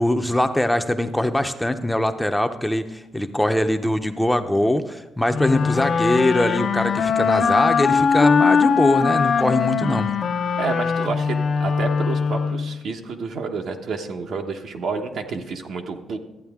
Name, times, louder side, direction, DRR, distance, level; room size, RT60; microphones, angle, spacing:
voice 1, 0.0-10.1, left 1 dB, 5° left, 7 dB, 0.6 m, -22 dB
sound 1, 5.3-12.8, left 6 dB, 55° left, 0.6 m, -21 dB
voice 2, 10.6-16.2, right 5 dB, 65° right, 4 dB, 1.0 m, -30 dB
13.0 x 8.6 x 3.6 m, 0.97 s
cardioid pair, 90°, 0 cm